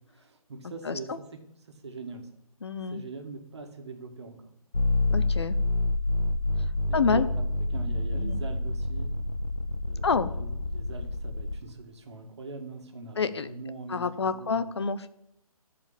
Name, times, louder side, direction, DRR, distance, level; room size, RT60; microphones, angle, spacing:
voice 1, 0.1-1.1 1.7-2.3 2.9-4.5 6.8-9.1 9.8-14.7, right 3 dB, 50° right, 5 dB, 1.9 m, -42 dB
voice 2, 0.8-1.2 2.6-3.0 5.1-5.6 6.9-7.3 8.1-8.4 10.0-10.3 13.2-13.5 13.9-15.1, left 5 dB, 45° left, 13 dB, 0.7 m, -28 dB
sound 1, 4.7-11.6, left 2 dB, 80° left, 1.2 m, -28 dB
12.5 x 5.1 x 8.5 m, 0.80 s
figure-of-eight pair, 145°, 19 cm